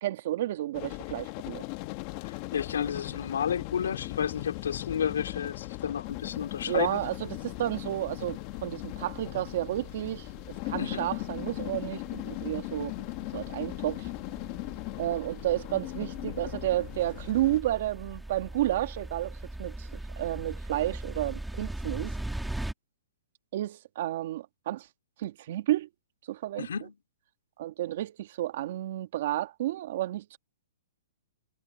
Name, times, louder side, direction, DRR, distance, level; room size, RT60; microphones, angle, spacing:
voice 1, 0.0-1.6 6.7-10.3 10.6-12.9 13.3-14.1 15.0-19.9 20.2-22.1 23.5-24.9 25.2-25.9 26.3-26.7 27.6-30.4, right 14 dB, 50° right, 1.6 m, -31 dB
sound 1, 0.7-17.6, left 23 dB, 35° left, 1.3 m, -38 dB
voice 2, 2.2-7.0 10.8-11.0 26.6-27.0, left 8 dB, 80° left, 3.0 m, -31 dB
sound 2, 6.1-22.7, right 1 dB, 5° right, 2.2 m, -42 dB
hypercardioid pair, 155°, 0 cm